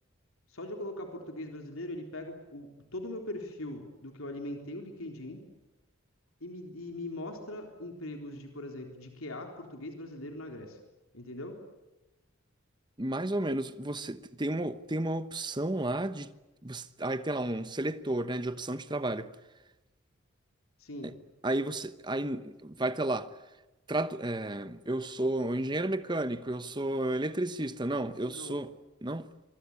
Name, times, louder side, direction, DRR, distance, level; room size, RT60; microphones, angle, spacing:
voice 1, 0.5-5.4 6.4-10.8 11.1-11.6 20.8-21.1 28.2-28.6, left 1 dB, 85° left, 3.8 m, -41 dB
voice 2, 13.0-16.3 16.6-19.3 21.0-21.1 21.4-23.3 23.9-28.7 29.0-29.3, right 1 dB, 20° right, 1.1 m, -32 dB
25.5 x 24.0 x 8.5 m
head